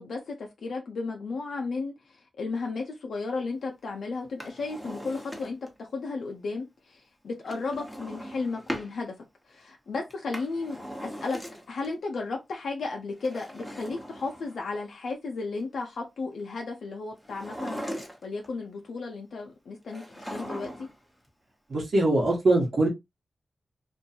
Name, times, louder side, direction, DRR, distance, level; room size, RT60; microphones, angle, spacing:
voice 1, 0.0-1.9 2.4-9.2 9.5-11.4 11.7-17.8 18.2-20.9, left 3 dB, 85° left, 0.5 m, -34 dB
Drawer open or close, 4.2-5.8 7.4-8.9 10.1-11.9 13.1-14.8 17.2-18.5 19.9-21.0 21.3-21.4, equal, ahead, 0.9 m, -39 dB
voice 2, 21.7-22.9, right 2 dB, 70° right, 1.2 m, -22 dB
2.6 x 2.3 x 2.7 m
cardioid pair, 55°, 0 cm